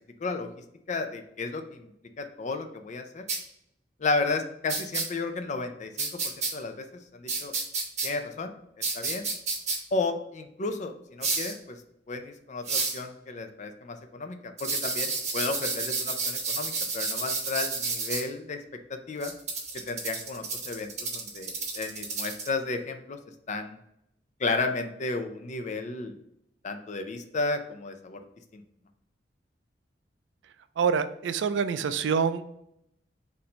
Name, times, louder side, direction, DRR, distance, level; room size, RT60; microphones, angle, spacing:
voice 1, 0.9-1.9 2.2-3.2 4.0-7.5 8.0-8.5 8.9-9.3 9.9-11.8 12.1-18.6 18.9-19.3 19.7-23.2 23.5-23.8 24.4-26.2 26.6-28.2 28.5-28.6, left 3 dB, 40° left, 7 dB, 0.5 m, -33 dB
Small Cabasa, 3.3-3.4 4.7-5.0 6.0-6.5 7.3-8.1 8.8-9.8 11.2-11.5 12.7-13.0 14.6-18.2 19.2-22.5, right 4 dB, 40° right, 1.0 m, -30 dB
voice 2, 30.8-32.4, right 6 dB, 75° right, 12 dB, 0.3 m, -26 dB
4.3 x 2.6 x 4.2 m, 0.79 s
head